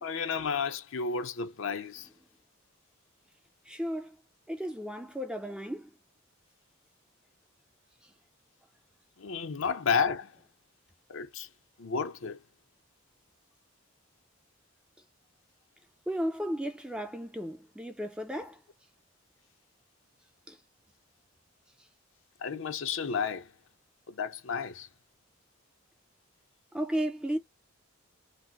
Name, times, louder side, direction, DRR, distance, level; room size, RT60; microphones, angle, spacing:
voice 1, 0.0-2.1 9.2-10.3 11.1-11.5 11.8-12.4 22.4-23.5 24.1-24.9, left 5 dB, 70° left, 0.6 m, -32 dB
voice 2, 3.7-4.1 4.5-5.9 16.1-18.6 20.5-20.6 26.7-27.4, equal, 5° right, 0.4 m, -34 dB
3.9 x 2.0 x 2.9 m
head